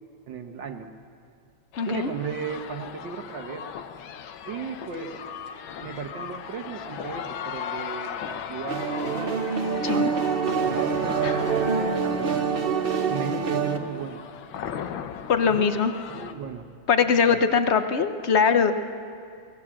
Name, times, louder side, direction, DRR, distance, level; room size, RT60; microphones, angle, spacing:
voice 1, 0.3-0.9 1.9-3.7 4.5-5.2 5.8-9.4 9.9-10.3 10.6-14.2 15.5-15.7 16.1-16.7 17.1-17.4, right 6 dB, 65° right, 6 dB, 1.8 m, -35 dB
sound 1, 1.7-16.3, left 8 dB, 70° left, 1.6 m, -38 dB
voice 2, 1.8-2.1 9.8-10.1 11.2-11.3 15.3-15.9 16.9-18.7, left 6 dB, 55° left, 9 dB, 0.7 m, -21 dB
sound 2, 8.7-13.8, right 5 dB, 40° right, 0.8 m, -25 dB
24.0 x 19.0 x 7.4 m, 2.4 s
omnidirectional pair, 2.3 m